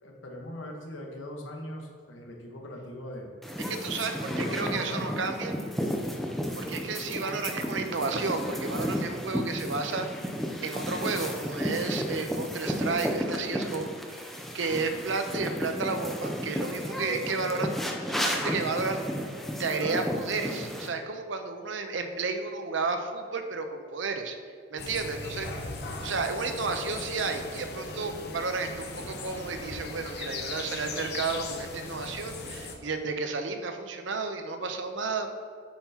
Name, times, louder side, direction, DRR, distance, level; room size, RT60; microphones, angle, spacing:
voice 1, 0.0-3.3 4.2-5.2 14.9-15.1, left 1 dB, 85° left, 1 dB, 1.2 m, -40 dB
sound 1, 3.4-20.9, equal, ahead, 0.5 m, -33 dB
voice 2, 3.7-5.6 6.6-10.3 10.6-19.3 19.6-24.4 24.7-25.7 26.0-35.4, right 4 dB, 75° right, 6 dB, 0.7 m, -32 dB
sound 2, 24.8-32.7, left 3 dB, 55° left, 0.8 m, -38 dB
8.6 x 5.8 x 2.9 m, 2.1 s
head